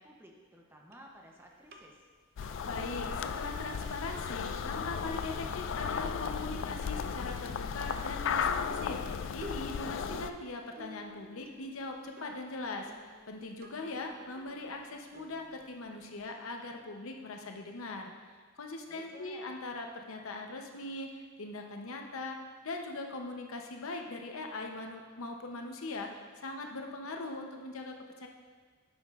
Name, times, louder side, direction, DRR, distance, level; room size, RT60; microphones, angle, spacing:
voice 1, 0.0-2.0 18.9-19.6, equal, 10° right, 0 dB, 0.7 m, -54 dB
sound 1, 0.9-16.3, right 1 dB, 45° right, 0.6 m, -53 dB
sound 2, 2.4-10.3, left 6 dB, 60° left, 0.3 m, -35 dB
voice 2, 2.6-18.1 18.6-28.3, left 2 dB, 85° left, 3 dB, 0.8 m, -41 dB
9.5 x 7.0 x 2.4 m, 1.5 s
head